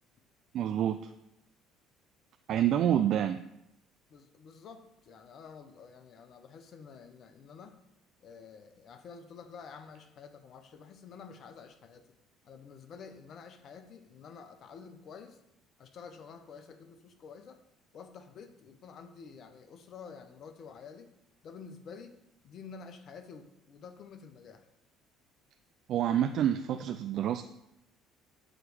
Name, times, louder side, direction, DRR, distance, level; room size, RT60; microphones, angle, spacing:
voice 1, 0.5-1.0 2.5-3.4 25.9-27.4, right 10 dB, 60° right, 9 dB, 0.3 m, -27 dB
voice 2, 4.1-7.8 8.2-12.1 12.4-15.4 15.8-17.6 17.9-21.1 21.4-22.1 22.4-24.7, left 6 dB, 55° left, 7 dB, 0.7 m, -49 dB
7.7 x 3.2 x 6.2 m, 0.84 s
hypercardioid pair, 65°, 0 cm